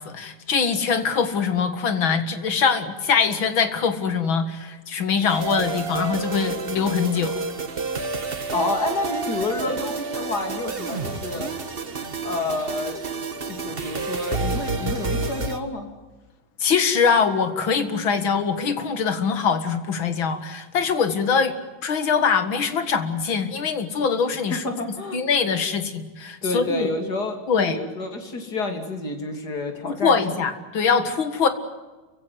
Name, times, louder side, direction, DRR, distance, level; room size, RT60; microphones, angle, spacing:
voice 1, 0.0-7.4 16.6-21.5 21.8-24.6 25.1-26.9 27.5-27.8 29.8-31.5, left 6 dB, 85° left, 9 dB, 2.7 m, -23 dB
sound 1, 5.3-15.6, right 4 dB, 30° right, 1.6 m, -29 dB
voice 2, 8.5-11.5 12.2-13.0 13.4-15.9 24.5-25.2 26.4-30.2, left 2 dB, 55° left, 5 dB, 3.4 m, -29 dB
29.5 x 16.0 x 9.5 m, 1.2 s
omnidirectional pair, 2.1 m